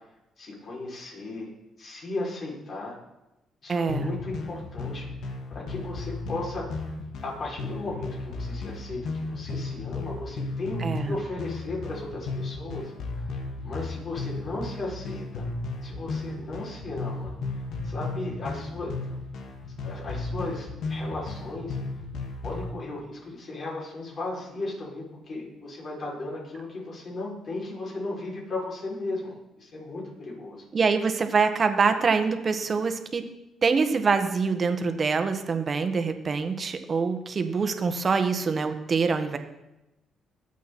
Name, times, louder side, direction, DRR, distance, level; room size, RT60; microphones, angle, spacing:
voice 1, 0.4-1.5 1.8-3.0 3.6-6.8 7.2-12.9 13.6-15.4 15.8-19.0 19.8-21.7 22.4-30.6, left 2 dB, 50° left, -4 dB, 6.5 m, -36 dB
voice 2, 3.7-4.1 10.8-11.1 30.7-33.2 33.6-39.4, right 5 dB, 40° right, 8 dB, 1.6 m, -25 dB
sound 1, 3.9-22.7, left 3 dB, 75° left, 2.4 m, -35 dB
22.5 x 8.2 x 4.4 m, 0.95 s
cardioid pair, 90°, 0 cm